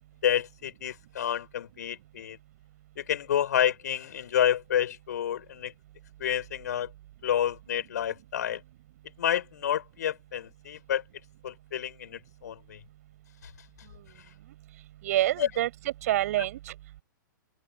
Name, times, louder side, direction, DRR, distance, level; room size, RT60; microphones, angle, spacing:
voice 1, 0.2-2.4 3.0-5.7 6.2-6.9 7.2-8.6 9.2-11.0 11.4-12.8 15.4-15.5, left 10 dB, 55° left, 5.2 m, -29 dB
voice 2, 15.0-16.7, right 14 dB, 45° right, 7.6 m, -27 dB
figure-of-eight pair, 110°, 11 cm